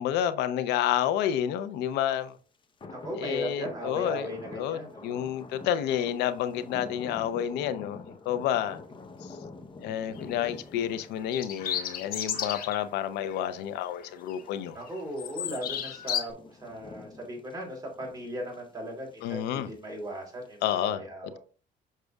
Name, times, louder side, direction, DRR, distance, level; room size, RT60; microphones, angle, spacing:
voice 1, 0.0-2.3 3.2-8.8 9.8-14.8 19.2-19.7 20.6-21.4, left 10 dB, 90° left, 0.6 m, -30 dB
sound 1, 2.2-2.3 2.6-20.8, left 3 dB, 30° left, 0.8 m, -48 dB
voice 2, 2.9-5.4 14.7-21.4, equal, 20° right, 3.3 m, -37 dB
sound 2, 10.2-10.4 11.2-12.8 13.2-13.4 13.8-14.6 14.9-16.3, left 9 dB, 60° left, 1.1 m, -33 dB
6.6 x 6.1 x 2.3 m
cardioid pair, 110°, 17 cm